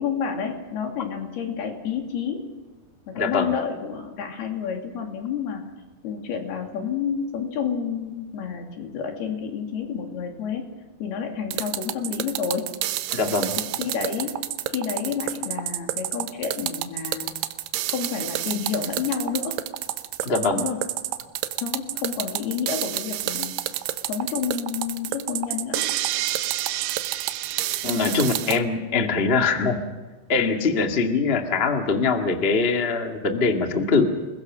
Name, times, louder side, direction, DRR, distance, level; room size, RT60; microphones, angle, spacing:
voice 1, 0.0-2.5 3.1-5.6 6.0-10.7 11.0-12.7 13.8-14.4 14.7-17.3 17.9-19.6 20.5-20.8 21.6-23.6 24.1-25.9 27.9-28.2, left 7 dB, 75° left, 3 dB, 4.5 m, -29 dB
voice 2, 3.1-3.5 13.1-13.6 20.2-20.6 27.8-29.8 30.3-34.1, left 4 dB, 35° left, 4 dB, 0.9 m, -22 dB
sound 1, 11.5-28.6, right 14 dB, 85° right, 3.0 m, -29 dB
28.5 x 21.0 x 6.2 m, 1.3 s
omnidirectional pair, 4.7 m